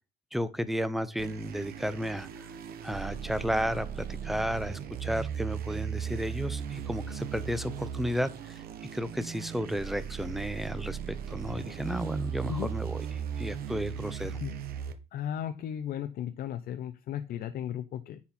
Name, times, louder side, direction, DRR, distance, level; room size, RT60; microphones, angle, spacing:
voice 1, 0.3-2.5 2.8-8.6 8.9-13.0 13.4-14.4, equal, ahead, 13 dB, 0.7 m, -33 dB
sound 1, 1.2-14.9, right 8 dB, 60° right, 1.1 m, -37 dB
voice 2, 12.4-12.8 14.4-14.5 15.1-18.2, left 10 dB, 65° left, 9 dB, 0.6 m, -35 dB
9.6 x 4.3 x 4.3 m, 0.31 s
cardioid pair, 110°, 17 cm